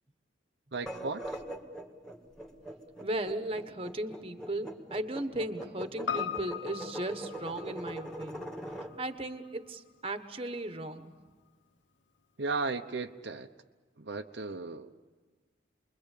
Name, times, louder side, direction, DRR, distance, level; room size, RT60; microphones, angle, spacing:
sound 1, 0.7-8.9, right 1 dB, 5° left, 2.2 m, -41 dB
voice 1, 0.7-1.4 12.4-13.5 14.0-14.9, right 3 dB, 65° right, 5 dB, 0.9 m, -35 dB
voice 2, 3.0-8.5 9.0-11.1, right 1 dB, 30° right, 8 dB, 1.4 m, -36 dB
Piano, 6.1-10.6 10.9-11.0, left 8 dB, 75° left, 1.0 m, -40 dB
28.5 x 22.5 x 8.5 m, 1.4 s
head